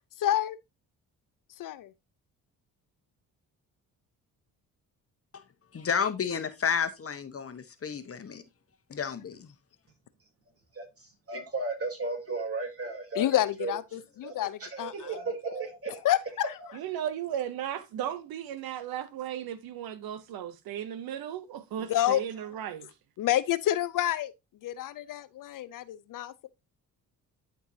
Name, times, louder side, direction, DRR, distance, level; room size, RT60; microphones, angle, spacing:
voice 1, 0.2-0.6 1.6-1.9 9.0-9.1 13.2-15.1 16.0-16.5 21.9-22.2 23.2-24.3 24.6-26.5, left 12 dB, 60° left, 0.6 m, -28 dB
voice 2, 5.7-8.4 8.9-9.5, left 7 dB, 40° left, 1.1 m, -31 dB
voice 3, 10.7-13.7 14.2-16.0, right 3 dB, 40° right, 3.4 m, -35 dB
voice 4, 16.7-22.9, right 10 dB, 70° right, 0.8 m, -35 dB
11.5 x 4.6 x 2.7 m
supercardioid pair, 65°, 37 cm